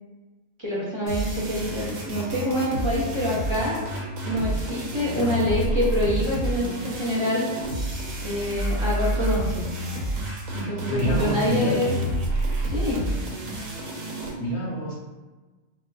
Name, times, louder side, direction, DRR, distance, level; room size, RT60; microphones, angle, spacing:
voice 1, 0.6-3.8 4.2-7.5 8.2-9.7 10.5-11.9 12.7-13.1, left 1 dB, 30° right, -7 dB, 0.6 m, -26 dB
sound 1, 1.1-14.3, right 1 dB, 90° right, 1.2 m, -29 dB
voice 2, 10.9-12.0 14.4-15.0, equal, 45° left, -3 dB, 0.8 m, -27 dB
4.0 x 2.3 x 2.3 m, 1.2 s
omnidirectional pair, 1.3 m